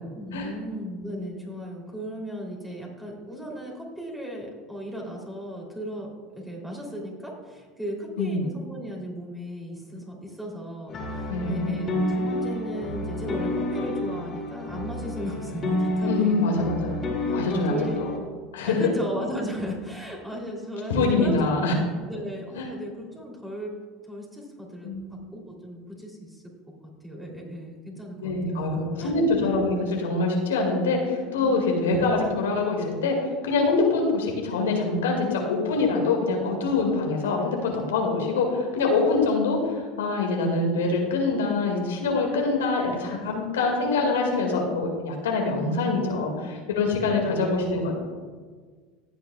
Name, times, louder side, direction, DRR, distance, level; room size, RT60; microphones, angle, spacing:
voice 1, 0.1-16.7 17.3-18.1 18.6-21.6 22.1-23.7 24.0-26.4 27.0-29.6 31.4-31.7, equal, 5° right, -1 dB, 3.1 m, -36 dB
sound 1, 10.9-18.2, left 1 dB, 35° left, 2.5 m, -29 dB
voice 2, 11.3-11.9 16.1-17.0 17.3-17.8 18.5-18.8 20.9-21.7 22.6-22.7 24.8-25.2 28.2-48.0, left 3 dB, 85° left, 0 dB, 2.1 m, -24 dB
15.5 x 8.4 x 2.4 m, 1.5 s
hypercardioid pair, 85°, 0 cm